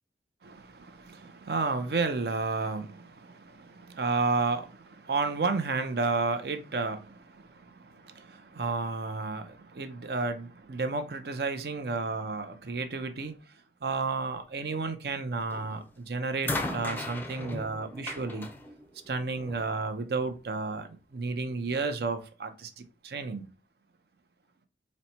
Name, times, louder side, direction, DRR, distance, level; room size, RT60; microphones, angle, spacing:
voice 1, 0.4-13.3 13.8-18.5 19.1-23.5, right 4 dB, 65° right, 0.5 m, -32 dB
sound 1, 15.5-15.9 16.4-19.7 20.7-20.8, left 2 dB, 10° left, 0.4 m, -37 dB
4.1 x 2.1 x 4.2 m
head